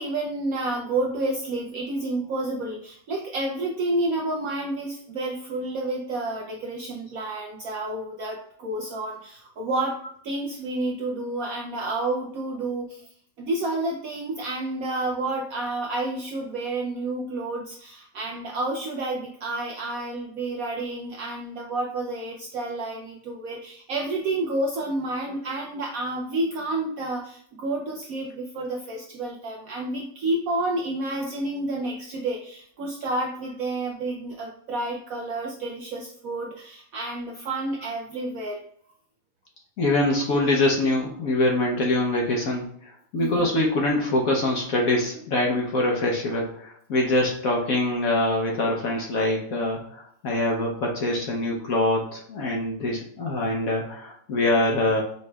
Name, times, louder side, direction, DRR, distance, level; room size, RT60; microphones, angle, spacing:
voice 1, 0.0-10.0 10.2-13.1 13.4-38.6 43.2-43.5, right 2 dB, 70° right, 0 dB, 0.8 m, -30 dB
voice 2, 39.8-55.0, left 1 dB, 60° left, -1 dB, 1.0 m, -24 dB
5.3 x 3.1 x 2.3 m, 0.63 s
omnidirectional pair, 2.0 m